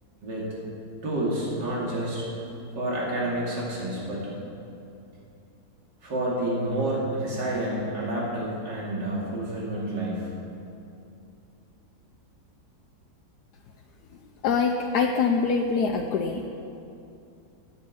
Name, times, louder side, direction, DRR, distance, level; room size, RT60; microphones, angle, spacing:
voice 1, 1.0-2.3 2.7-4.3 6.0-10.3, right 1 dB, 80° right, -5 dB, 3.1 m, -29 dB
voice 2, 14.4-16.5, left 5 dB, 70° left, 2 dB, 1.2 m, -24 dB
9.8 x 8.5 x 9.3 m, 2.7 s
omnidirectional pair, 1.9 m